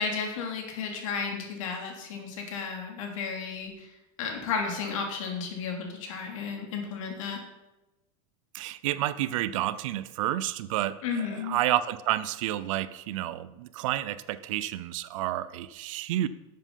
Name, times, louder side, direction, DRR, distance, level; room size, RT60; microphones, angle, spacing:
voice 1, 0.0-3.9 4.2-7.4 11.0-11.6, left 5 dB, 70° left, 2 dB, 3.0 m, -33 dB
voice 2, 8.5-16.3, right 13 dB, 65° right, 15 dB, 0.7 m, -30 dB
12.0 x 7.6 x 5.6 m, 1.0 s
supercardioid pair, 150°, 18 cm